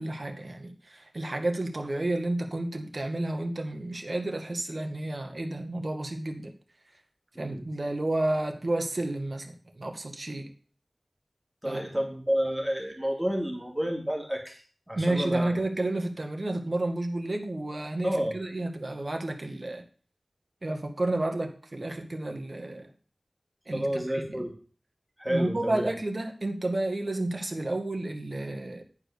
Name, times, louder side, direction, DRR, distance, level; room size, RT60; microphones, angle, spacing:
voice 1, 0.0-6.5 7.4-10.5 11.6-11.8 14.9-19.8 20.6-22.9 23.7-24.5 25.3-28.8, right 2 dB, 55° right, 3 dB, 1.9 m, -31 dB
voice 2, 7.3-7.7 11.6-14.6 14.9-15.6 18.0-18.3 23.7-24.5 25.2-25.9, equal, 5° right, 0 dB, 2.8 m, -30 dB
11.0 x 4.8 x 6.7 m, 0.41 s
wide cardioid pair, 65°, 0 cm